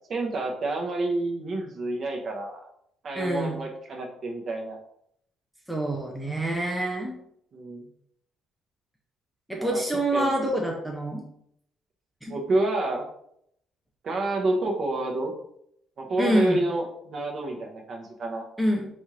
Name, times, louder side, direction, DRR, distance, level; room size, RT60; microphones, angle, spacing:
voice 1, 0.1-2.7 3.0-4.8 7.5-7.9 9.5-9.8 10.1-10.3 12.3-13.0 14.0-15.3 16.0-18.4, right 2 dB, 40° right, 1 dB, 0.7 m, -28 dB
voice 2, 3.1-3.6 5.7-7.1 9.5-11.2 12.2-12.4 16.2-16.6 18.6-18.9, right 1 dB, ahead, -1 dB, 0.5 m, -26 dB
4.2 x 2.4 x 3.1 m, 0.71 s
cardioid pair, 150°, 0 cm